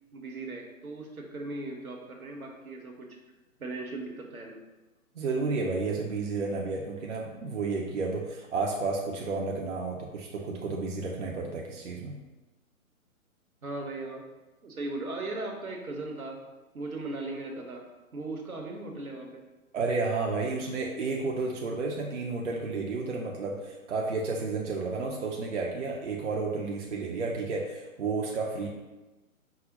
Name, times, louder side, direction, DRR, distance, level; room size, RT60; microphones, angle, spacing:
voice 1, 0.1-3.2 3.6-4.6 13.6-14.2 14.6-16.4 16.7-17.8 18.1-19.4 28.6-28.7, right 2 dB, 80° right, 1 dB, 0.9 m, -38 dB
voice 2, 5.1-12.2 19.7-28.7, right 3 dB, 55° right, 0 dB, 0.5 m, -31 dB
4.7 x 2.0 x 4.0 m, 1.1 s
figure-of-eight pair, 130°, 43 cm